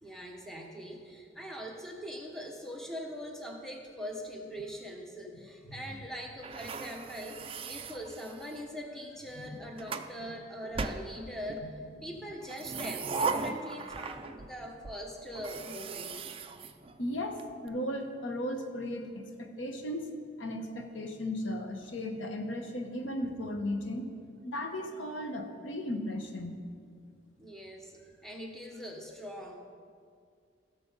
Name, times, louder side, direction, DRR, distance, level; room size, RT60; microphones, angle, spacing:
voice 1, 0.0-11.7 12.0-16.4 27.4-29.6, equal, 5° left, 0 dB, 1.1 m, -42 dB
sound 1, 6.4-8.7 9.4-10.1 10.7-11.7 12.4-14.5 14.8-14.9 15.3-17.4, right 4 dB, 30° right, 0.4 m, -38 dB
voice 2, 17.0-20.1 20.4-24.1 24.4-26.6, left 1 dB, 80° left, 4 dB, 1.0 m, -36 dB
15.5 x 6.9 x 4.0 m, 2.2 s
head